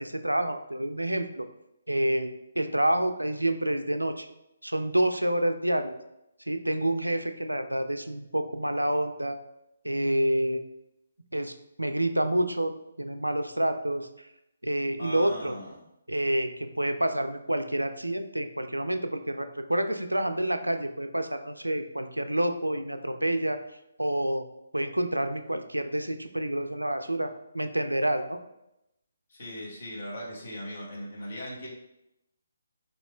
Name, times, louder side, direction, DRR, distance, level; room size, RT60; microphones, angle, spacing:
voice 1, 0.0-1.5 1.9-4.3 4.6-6.0 6.5-9.4 9.8-10.6 11.3-11.5 11.8-12.7 13.0-14.1 14.6-15.5 16.1-23.6 24.0-24.5 24.7-28.4, right 1 dB, 90° right, 8 dB, 0.3 m, -28 dB
voice 2, 15.0-15.8 29.3-31.7, equal, 50° left, -3 dB, 1.2 m, -39 dB
4.0 x 3.1 x 2.3 m, 0.86 s
figure-of-eight pair, 140°, 0 cm